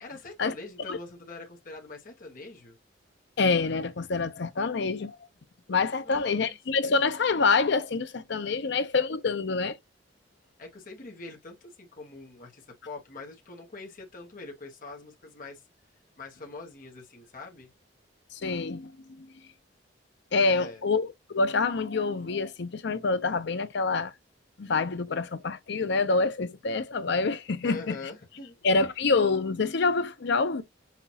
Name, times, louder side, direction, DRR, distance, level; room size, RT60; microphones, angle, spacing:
voice 1, 0.0-2.8 6.0-6.6 10.6-15.6 16.2-17.7 20.4-20.8 27.6-28.5, left 3 dB, 50° left, 1.1 m, -44 dB
voice 2, 3.4-5.2 5.7-9.8 18.3-18.9 19.2-19.3 20.3-24.1 24.6-28.0 28.6-30.6, left 4 dB, 65° left, 0.6 m, -26 dB
5.8 x 2.4 x 2.8 m
head